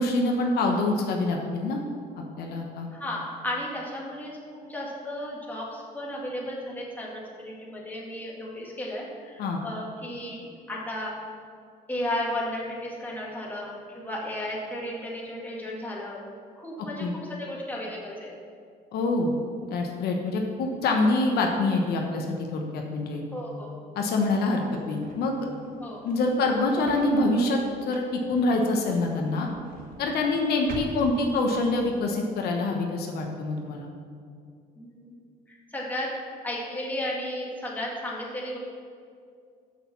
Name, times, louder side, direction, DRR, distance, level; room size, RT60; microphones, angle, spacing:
voice 1, 0.0-1.8 2.2-2.9 9.4-9.6 17.0-17.1 18.9-19.3 19.7-23.2 23.9-25.3 26.0-27.6 27.9-29.5 30.0-33.9, left 2 dB, 70° left, 1 dB, 1.1 m, -25 dB
voice 2, 2.9-11.1 11.9-16.2 16.6-17.1 17.4-18.3 23.3-23.8 25.8-26.0 34.8-35.1 35.5-36.1 36.4-38.6, left 1 dB, 10° left, -4 dB, 2.0 m, -34 dB
sound 1, 24.6-32.1, right 3 dB, 55° right, 1.2 m, -46 dB
6.6 x 6.2 x 7.0 m, 2.3 s
cardioid pair, 110°, 17 cm